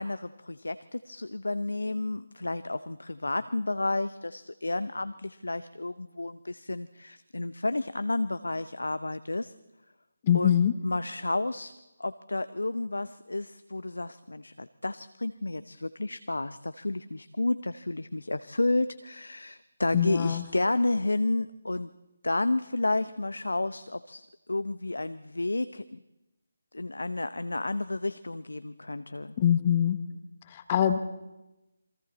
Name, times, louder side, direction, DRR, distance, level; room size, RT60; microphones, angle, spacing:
voice 1, 0.0-9.5 10.3-10.6 10.8-11.7 12.0-21.9 22.2-26.0 26.7-29.4, left 2 dB, 70° left, 13 dB, 0.8 m, -31 dB
voice 2, 10.3-10.7 19.9-20.4 29.4-30.0 30.5-31.0, left 9 dB, 25° left, 10 dB, 1.1 m, -23 dB
28.0 x 23.0 x 4.2 m, 0.99 s
figure-of-eight pair, 150°, 0 cm